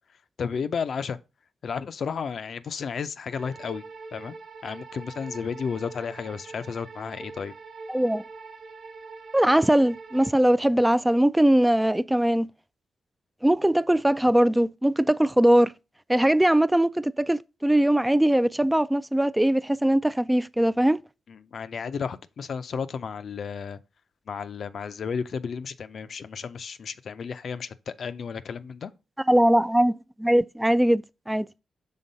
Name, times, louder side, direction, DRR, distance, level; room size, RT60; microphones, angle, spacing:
voice 1, 0.4-1.2 1.6-3.8 4.1-4.3 4.6-7.5 21.3-23.8 24.3-28.9, left 6 dB, 65° left, 0.5 m, -33 dB
sound 1, 3.3-10.3, right 4 dB, 75° right, 1.0 m, -44 dB
voice 2, 7.9-8.2 9.3-12.5 13.4-15.7 16.1-21.0 29.3-31.5, right 1 dB, 10° right, 0.3 m, -21 dB
5.7 x 3.6 x 5.2 m
supercardioid pair, 50°, 0 cm